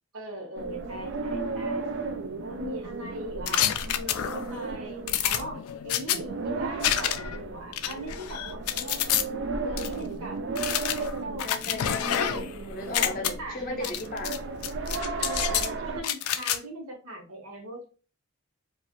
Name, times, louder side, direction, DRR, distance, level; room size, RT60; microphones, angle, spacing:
voice 1, 0.1-1.9 2.4-9.1 9.6-10.5 11.0-12.5 13.3-14.0 15.2-17.9, right 1 dB, 90° right, 0.9 m, -40 dB
sound 1, 0.6-16.0, right 3 dB, 55° right, 0.4 m, -35 dB
sound 2, 3.5-4.6 5.1-6.2 6.8-7.4 7.7-9.2 9.8-9.9 10.5-12.5 12.8-13.3 13.8-14.4 14.6-15.7 16.0-16.6, left 10 dB, 90° left, 0.3 m, -28 dB
voice 2, 11.4-14.4, left 2 dB, 40° left, 0.6 m, -35 dB
2.8 x 2.3 x 2.9 m
head